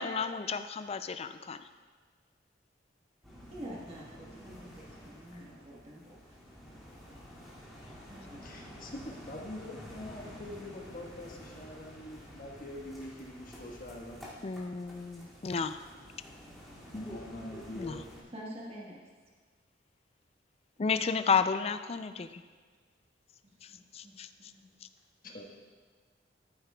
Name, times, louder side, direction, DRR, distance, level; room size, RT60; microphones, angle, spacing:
voice 1, 0.0-1.6 14.4-15.8 17.8-18.0 20.8-22.3 23.9-24.3, left 5 dB, 35° left, 11 dB, 0.4 m, -32 dB
sound 1, 3.2-18.2, equal, ahead, 2.4 m, -50 dB
voice 2, 3.5-6.4 8.1-8.8 18.3-19.0 21.0-21.7 22.0-22.2 23.4-23.8 24.0-24.1 24.4-24.7, equal, 35° right, -5 dB, 1.3 m, -48 dB
voice 3, 8.4-14.3 16.9-18.1 25.2-25.4, left 1 dB, 50° left, -1 dB, 1.4 m, -44 dB
13.5 x 8.5 x 2.3 m, 1.5 s
head